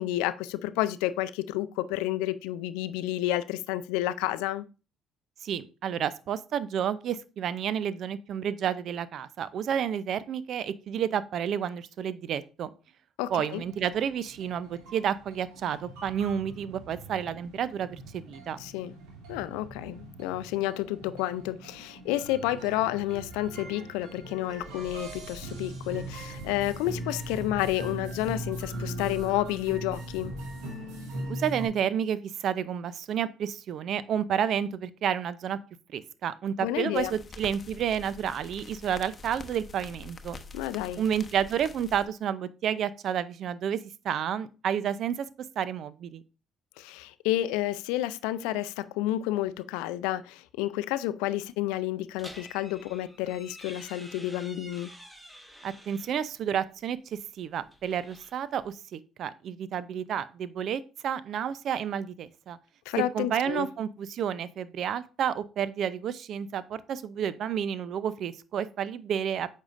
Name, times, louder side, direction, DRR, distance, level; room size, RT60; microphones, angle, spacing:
voice 1, 0.0-4.6 13.2-13.6 18.6-18.9 19.3-30.3 36.6-37.1 40.5-41.0 46.8-54.9 62.9-63.7, left 14 dB, 80° left, 0.4 m, -30 dB
voice 2, 5.4-12.7 13.3-18.6 31.3-35.6 35.9-40.4 41.0-43.8 44.0-45.3 45.6-46.2 55.6-62.6 63.1-69.5, right 8 dB, 60° right, 0.5 m, -30 dB
sound 1, 13.5-31.7, right 1 dB, 80° right, 2.6 m, -40 dB
sound 2, 36.9-42.1, left 3 dB, 35° left, 0.9 m, -46 dB
sound 3, 52.2-56.2 57.5-58.7, equal, 10° right, 1.9 m, -49 dB
8.7 x 5.5 x 2.5 m
hypercardioid pair, 60°, 0 cm